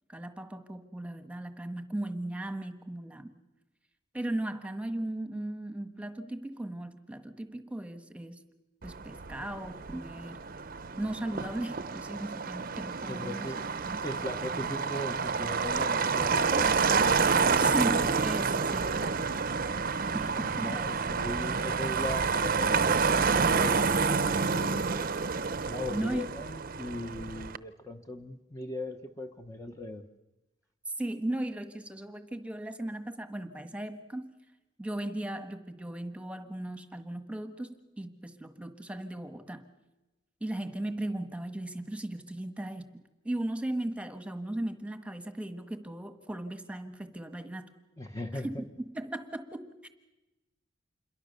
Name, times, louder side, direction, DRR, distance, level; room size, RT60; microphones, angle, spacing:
voice 1, 0.1-3.3 4.1-8.4 8.8-10.4 11.0-13.5 13.9-14.0 17.5-21.1 25.9-26.3 31.0-34.3 34.8-39.6 40.4-42.9 43.2-47.7 48.3-48.7 48.9-49.9, right 1 dB, 5° right, 8 dB, 1.5 m, -37 dB
Motor vehicle (road), 8.8-27.6, right 5 dB, 50° right, 0.8 m, -29 dB
voice 2, 13.1-13.6 14.0-16.8 20.3-25.1 25.6-30.0 48.0-48.5, left 1 dB, 15° left, 5 dB, 1.1 m, -39 dB
27.5 x 22.5 x 6.8 m, 1.0 s
head